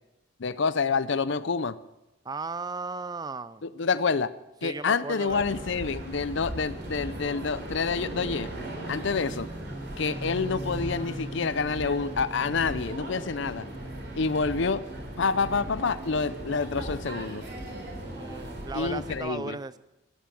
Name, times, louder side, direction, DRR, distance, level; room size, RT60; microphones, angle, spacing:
voice 1, 0.4-1.7 3.6-4.3 4.6-8.5 8.9-9.5 10.0-13.7 14.2-14.8 15.2-17.4 18.7-19.6, left 4 dB, 60° left, 15 dB, 0.6 m, -28 dB
voice 2, 2.2-3.6 4.6-5.6 9.0-9.5 18.0-19.8, right 3 dB, 20° right, 15 dB, 0.4 m, -36 dB
sound 1, 5.3-19.2, right 1 dB, 50° right, 4.1 m, -37 dB
13.5 x 10.5 x 7.6 m, 0.98 s
head